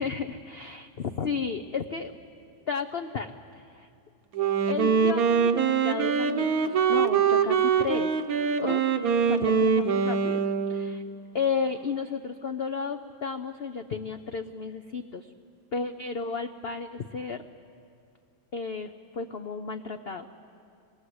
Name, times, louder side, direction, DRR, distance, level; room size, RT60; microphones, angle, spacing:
voice 1, 0.0-2.1 2.7-3.9 4.7-8.2 8.6-8.8 9.3-10.4 10.7-11.0 11.3-15.3 15.7-17.4 18.5-20.3, left 5 dB, 60° left, 7 dB, 0.6 m, -33 dB
Wind instrument woodwind instrument, 4.3-11.1, right 6 dB, 60° right, 1.3 m, -24 dB
26.5 x 21.5 x 7.9 m, 2.4 s
omnidirectional pair, 1.9 m